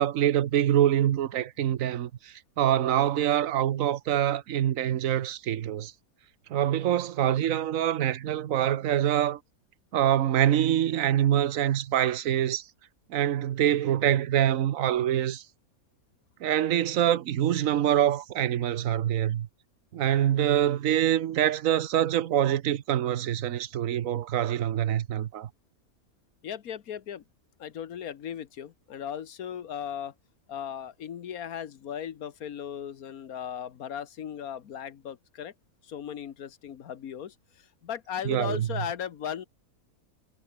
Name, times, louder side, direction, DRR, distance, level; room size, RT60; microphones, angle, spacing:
voice 1, 0.0-5.9 6.5-9.4 9.9-12.6 13.1-15.4 16.4-19.5 19.9-25.5 38.3-38.7, right 11 dB, 65° right, 1.2 m, -25 dB
voice 2, 26.4-27.2 27.6-30.1 30.5-35.5 35.8-39.4, left 9 dB, 75° left, 1.5 m, -37 dB
omnidirectional pair, 1.6 m